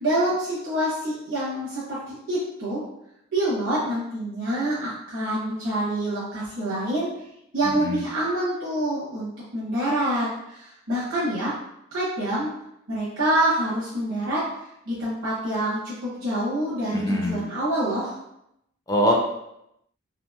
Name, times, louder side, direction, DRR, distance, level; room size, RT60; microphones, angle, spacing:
voice 1, 0.0-2.8 3.3-7.1 7.5-11.5 11.9-12.5 12.9-14.4 14.9-18.1, right 1 dB, 60° right, -10 dB, 0.8 m, -26 dB
voice 2, 7.6-8.0 16.9-17.4 18.9-19.1, equal, 15° left, 0 dB, 0.4 m, -23 dB
2.9 x 2.6 x 2.2 m, 0.81 s
head